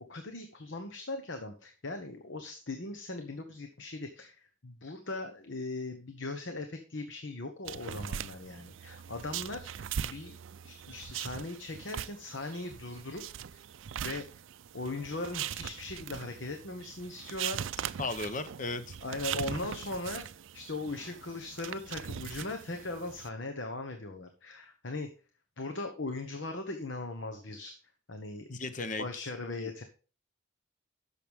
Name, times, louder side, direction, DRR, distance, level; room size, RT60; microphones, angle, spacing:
voice 1, 0.1-10.4 10.6-13.6 14.0-14.3 14.7-17.6 19.0-20.2 20.5-25.1 25.6-27.7 28.1-28.5 29.0-29.8, left 2 dB, 70° left, 6 dB, 1.1 m, -39 dB
sound 1, 7.7-23.3, right 9 dB, 75° right, 0.4 m, -41 dB
voice 2, 18.0-19.0 28.5-29.3 29.6-29.7, left 3 dB, 40° left, 11 dB, 0.8 m, -36 dB
11.0 x 7.0 x 3.5 m, 0.37 s
head